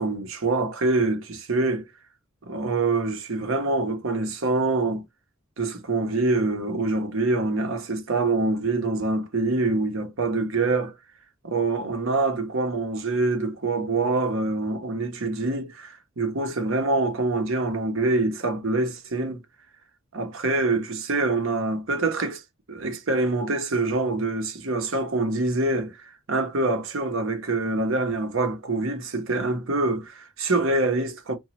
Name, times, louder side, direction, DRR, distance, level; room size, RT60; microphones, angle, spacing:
voice 1, 0.0-1.9 2.4-5.0 5.6-10.9 11.4-19.4 20.1-22.4 22.7-31.4, right 3 dB, 70° right, 0.8 m, -25 dB
2.9 x 2.3 x 3.0 m
head